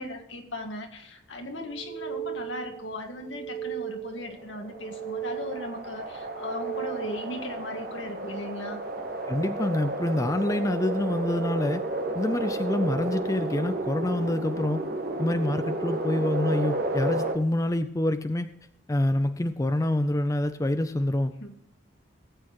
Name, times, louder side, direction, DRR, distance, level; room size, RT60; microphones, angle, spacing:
voice 1, 0.0-8.8 21.4-21.5, left 2 dB, 75° left, 4 dB, 1.9 m, -37 dB
sound 1, 1.6-2.8 3.1-4.3 4.6-5.8 6.2-7.3, right 11 dB, 55° left, 3.6 m, -36 dB
sound 2, 4.1-17.4, right 2 dB, 50° right, 1.4 m, -32 dB
voice 2, 9.3-11.8 12.1-14.8 15.2-18.5 18.9-21.3, left 1 dB, 15° left, 9 dB, 0.4 m, -26 dB
18.0 x 8.5 x 3.0 m, 0.82 s
head